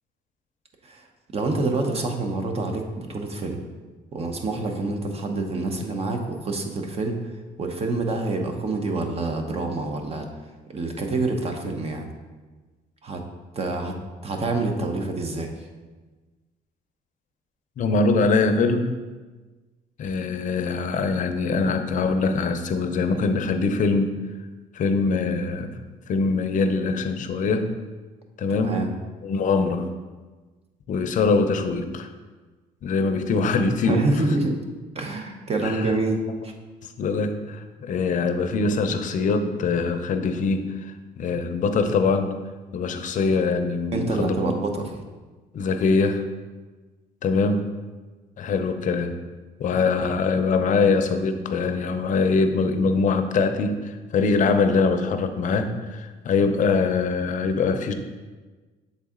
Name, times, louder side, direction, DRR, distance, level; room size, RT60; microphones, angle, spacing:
voice 1, 1.3-3.7 4.1-7.2 7.6-10.3 10.7-12.1 13.0-13.2 13.5-13.9 14.2-15.5 28.5-28.9 33.9-34.6 34.9-36.5 43.9-44.9, right 2 dB, 35° right, 4 dB, 0.8 m, -27 dB
voice 2, 17.8-18.9 20.0-24.2 24.7-25.7 26.1-27.7 28.4-28.7 29.2-29.9 30.9-32.1 32.8-34.0 35.6-35.9 36.8-40.9 41.2-42.3 42.7-44.3 45.5-46.3 47.2-47.6 48.4-49.1 49.6-57.9, left 4 dB, 50° left, 8 dB, 0.6 m, -23 dB
7.1 x 4.0 x 3.7 m, 1.3 s
cardioid pair, 110°, 17 cm